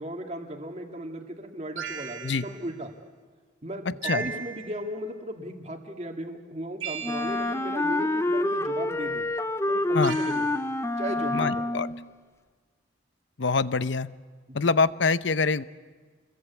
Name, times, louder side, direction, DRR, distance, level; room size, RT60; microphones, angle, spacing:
voice 1, 0.0-2.9 3.6-9.3 9.7-10.5 10.9-11.7 14.5-14.7, equal, 35° right, 2 dB, 2.1 m, -36 dB
sound 1, 1.8-2.7 4.0-4.9 6.8-7.7 10.0-10.6, right 7 dB, 90° right, 2.7 m, -37 dB
Wind instrument woodwind instrument, 7.0-12.1, left 2 dB, 15° left, 0.7 m, -27 dB
voice 2, 11.3-11.9 13.4-14.1 14.5-15.6, left 4 dB, 70° left, 15 dB, 0.8 m, -25 dB
28.0 x 22.0 x 8.4 m, 1.5 s
head